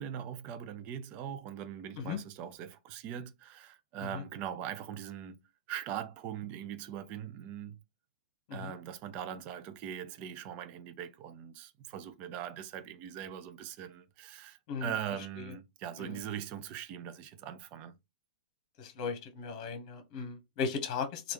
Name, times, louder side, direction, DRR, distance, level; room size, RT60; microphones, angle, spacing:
voice 1, 0.0-5.4 5.7-7.8 8.5-17.9, right 9 dB, 30° right, 0.5 m, -41 dB
voice 2, 18.8-21.3, left 5 dB, 40° left, 1.2 m, -36 dB
3.3 x 2.4 x 3.1 m
hypercardioid pair, 135°, 5 cm